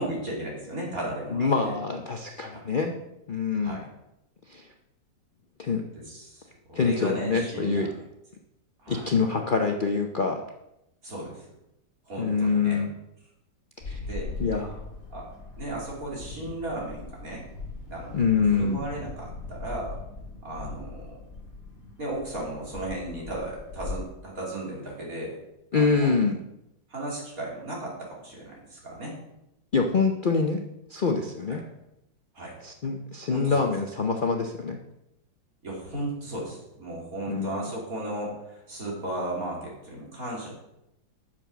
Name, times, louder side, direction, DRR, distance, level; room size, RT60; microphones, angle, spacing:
voice 1, 0.0-1.7 2.5-2.6 3.6-3.8 6.0-7.9 8.8-9.1 11.0-11.5 12.1-12.8 14.1-14.3 15.1-15.3 15.6-17.4 17.9-18.2 18.5-20.0 20.4-21.2 22.0-25.4 25.7-26.1 26.9-29.2 31.5-31.6 32.3-32.5 33.3-33.7 35.6-40.5, right 1 dB, 50° right, -4 dB, 3.5 m, -35 dB
voice 2, 1.3-3.0 3.3-3.8 4.5-4.7 5.6-5.8 6.7-7.9 8.9-10.4 12.2-12.9 13.9-14.0 14.4-14.8 18.1-18.8 25.7-26.4 29.7-30.6 30.9-31.6 32.6-34.8 37.3-37.7, left 4 dB, 85° left, 3 dB, 0.4 m, -25 dB
sound 1, 13.8-24.0, left 3 dB, 50° left, 2.5 m, -40 dB
8.5 x 7.0 x 6.1 m, 0.86 s
omnidirectional pair, 2.0 m